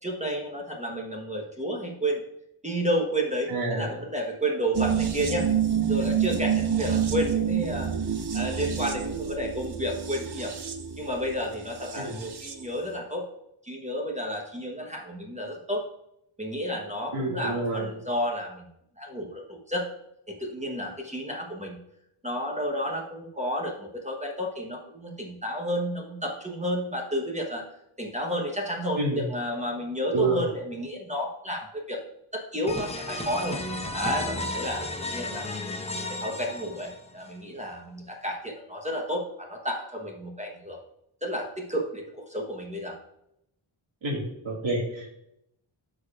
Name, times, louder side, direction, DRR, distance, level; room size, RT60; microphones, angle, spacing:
voice 1, 0.0-2.2 2.6-5.5 5.9-7.9 8.3-10.5 11.0-13.2 13.6-15.8 16.4-18.7 19.0-19.9 20.3-21.8 22.2-27.6 28.0-32.0 32.3-33.6 33.9-35.7 36.1-40.8 41.2-43.0, equal, 15° right, 0 dB, 1.0 m, -31 dB
voice 2, 3.5-3.9 12.0-12.1 17.1-17.8 29.0-29.2 30.1-30.4 44.0-45.2, right 2 dB, 70° right, -5 dB, 2.1 m, -28 dB
sound 1, 4.7-12.6 12.9-13.0, right 8 dB, 50° right, 0.9 m, -28 dB
sound 2, 32.7-37.3, left 1 dB, 15° left, 0.7 m, -33 dB
13.0 x 5.0 x 2.4 m, 0.80 s
wide cardioid pair, 160°, 49 cm